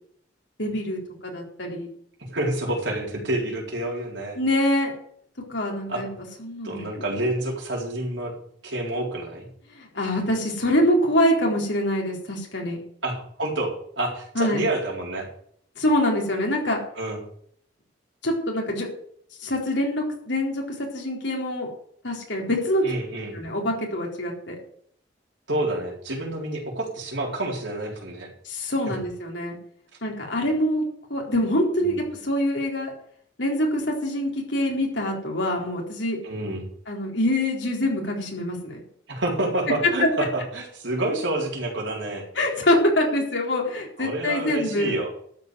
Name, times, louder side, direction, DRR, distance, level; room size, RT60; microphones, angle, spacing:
voice 1, 0.6-1.9 4.4-4.9 5.5-6.1 6.4-7.1 9.7-12.8 14.3-14.6 15.8-16.8 18.2-18.9 19.4-20.6 20.9-21.7 22.0-22.8 23.3-24.6 28.4-29.6 30.0-30.8 31.1-32.9 33.4-36.2 36.9-38.8 42.4-44.9, left 1 dB, 75° left, -1 dB, 4.2 m, -25 dB
voice 2, 2.3-4.4 5.9-6.0 6.6-8.3 8.6-9.5 13.0-15.3 17.0-17.2 22.8-23.3 25.5-28.3 31.8-32.0 36.2-36.7 39.1-42.3 44.0-45.1, right 1 dB, 80° right, -1 dB, 4.2 m, -28 dB
13.0 x 5.6 x 9.2 m, 0.63 s
head